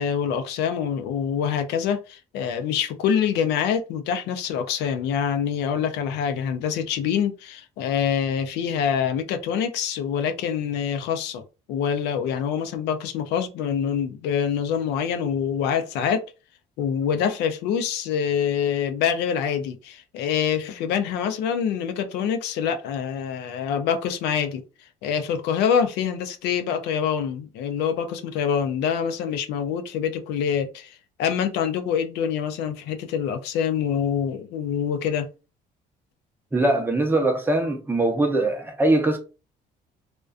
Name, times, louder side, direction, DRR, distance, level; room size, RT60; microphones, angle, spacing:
voice 1, 0.0-11.4 11.7-16.3 16.8-24.6 25.0-35.3, left 8 dB, 85° left, 0.4 m, -25 dB
voice 2, 36.5-39.2, right 2 dB, 10° right, 0.6 m, -21 dB
2.4 x 2.2 x 2.4 m
cardioid pair, 110°, 17 cm